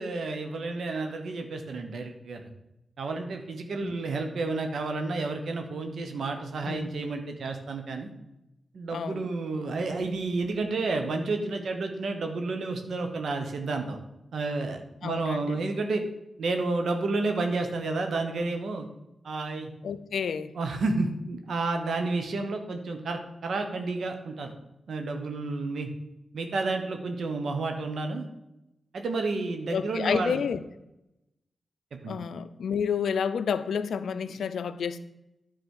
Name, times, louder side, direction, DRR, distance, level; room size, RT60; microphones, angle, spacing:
voice 1, 0.0-2.5 3.0-8.1 8.7-14.0 14.3-16.0 16.4-18.9 19.2-19.7 20.6-24.5 24.9-25.9 26.3-28.3 28.9-30.4 32.0-32.1, right 3 dB, 75° right, 1.1 m, -30 dB
voice 2, 8.9-9.3 15.0-15.6 19.8-20.5 29.7-30.6 32.1-35.0, left 7 dB, 80° left, 0.5 m, -30 dB
9.5 x 4.1 x 6.4 m
cardioid pair, 45°, 0 cm